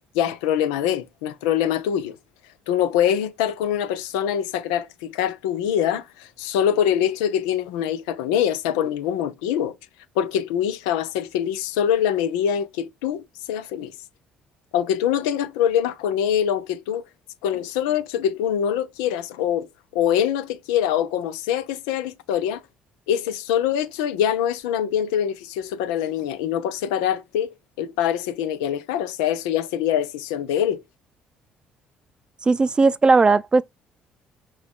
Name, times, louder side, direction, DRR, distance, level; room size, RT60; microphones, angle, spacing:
voice 1, 0.1-2.1 2.7-9.7 10.2-13.9 14.7-17.0 17.4-19.7 19.9-22.6 23.1-30.8, left 9 dB, 90° left, 0.6 m, -24 dB
voice 2, 32.4-33.6, right 3 dB, 25° right, 0.5 m, -17 dB
5.9 x 2.4 x 3.7 m
supercardioid pair, 70°, 3 cm